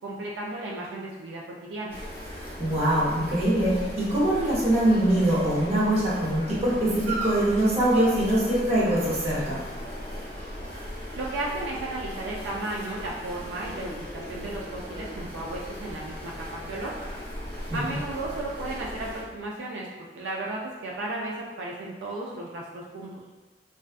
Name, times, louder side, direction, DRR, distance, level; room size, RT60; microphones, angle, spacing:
voice 1, 0.0-1.9 11.1-17.0 17.7-19.9 20.1-23.1, right 2 dB, 90° right, -3 dB, 0.3 m, -34 dB
sound 1, 1.9-19.2, equal, 15° left, 0.8 m, -37 dB
voice 2, 2.6-9.6 17.7-18.0, right 1 dB, 35° right, -6 dB, 0.7 m, -23 dB
2.4 x 2.2 x 2.3 m, 1.2 s
head